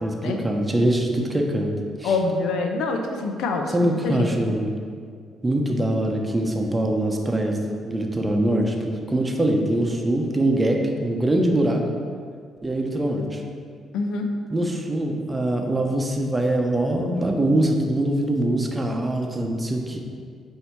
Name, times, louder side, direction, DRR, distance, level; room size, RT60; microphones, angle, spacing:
voice 1, 0.0-1.7 2.0-2.1 3.7-4.8 5.4-11.8 12.6-13.4 14.5-20.0, right 1 dB, 20° right, 2 dB, 0.7 m, -23 dB
voice 2, 2.0-3.7 4.0-4.3 13.9-14.3, left 3 dB, 85° left, 4 dB, 0.6 m, -25 dB
7.8 x 2.8 x 4.6 m, 2.1 s
cardioid pair, 90°, 0 cm